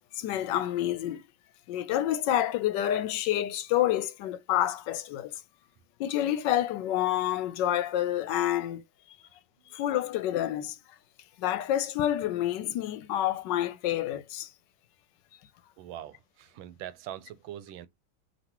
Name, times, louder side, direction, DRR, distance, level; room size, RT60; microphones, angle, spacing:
voice 1, 0.1-1.2 1.7-5.3 6.0-8.8 9.7-10.8 11.4-14.5, left 12 dB, 75° left, 1.1 m, -28 dB
voice 2, 15.8-17.9, right 12 dB, 90° right, 1.4 m, -42 dB
5.2 x 2.9 x 2.9 m
omnidirectional pair, 2.1 m